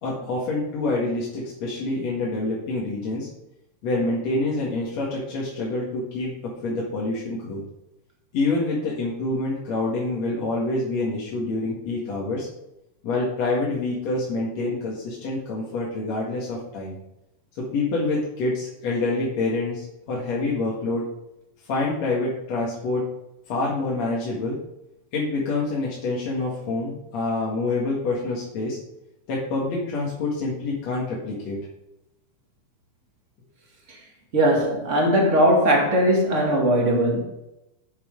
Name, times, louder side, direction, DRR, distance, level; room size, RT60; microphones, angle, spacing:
voice 1, 0.0-3.3 3.8-6.3 6.6-7.6 8.3-12.5 13.0-17.0 17.6-21.1 21.7-23.1 23.5-24.6 25.1-28.8 29.3-31.6, left 2 dB, 60° left, -5 dB, 2.8 m, -26 dB
voice 2, 34.3-37.2, right 1 dB, 40° right, 1 dB, 1.0 m, -19 dB
7.3 x 6.9 x 5.1 m, 0.92 s
omnidirectional pair, 3.5 m